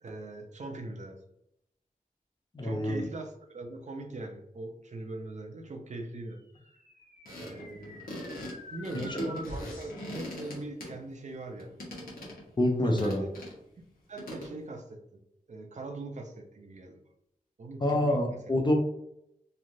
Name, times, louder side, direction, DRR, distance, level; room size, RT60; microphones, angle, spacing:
voice 1, 0.0-1.2 2.6-6.7 7.4-8.0 8.7-11.7 12.8-13.3 14.1-15.0 15.5-17.0 17.6-18.4, right 2 dB, 55° right, 3 dB, 0.5 m, -41 dB
voice 2, 2.5-3.0 9.1-9.2 12.6-13.2 17.8-18.7, left 1 dB, 30° left, 2 dB, 0.5 m, -26 dB
sound 1, 6.5-10.1, left 1 dB, 70° left, 1.2 m, -46 dB
sound 2, 7.3-11.3 11.6-12.5 13.0-13.5 14.2-14.6, left 1 dB, 85° left, 1.0 m, -42 dB
3.1 x 2.5 x 2.6 m, 0.80 s
wide cardioid pair, 85°, 15 cm